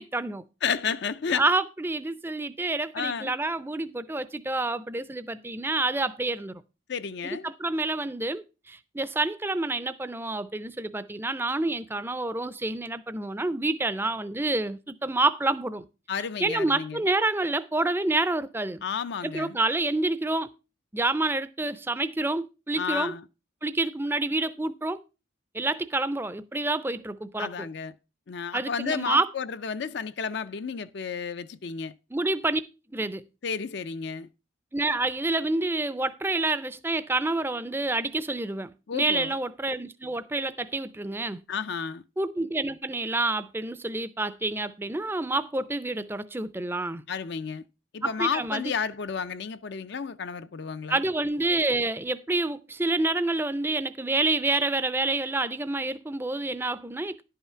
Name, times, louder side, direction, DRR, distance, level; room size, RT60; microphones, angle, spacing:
voice 1, 0.0-0.4 1.3-6.5 7.2-15.9 16.4-18.8 19.2-20.5 20.9-23.1 23.6-25.0 25.5-27.7 28.5-29.3 32.1-32.6 32.9-33.2 34.7-41.4 42.2-47.0 48.0-48.7 50.9-57.2, right 2 dB, 10° right, 0.5 m, -28 dB
voice 2, 0.6-1.4 2.9-3.3 6.9-7.5 16.1-17.0 18.8-19.6 22.8-23.2 27.4-27.9 28.3-31.9 33.4-34.3 38.9-39.4 41.5-42.0 47.1-47.6 47.9-51.0, left 6 dB, 55° left, 0.4 m, -32 dB
11.0 x 5.7 x 5.6 m
head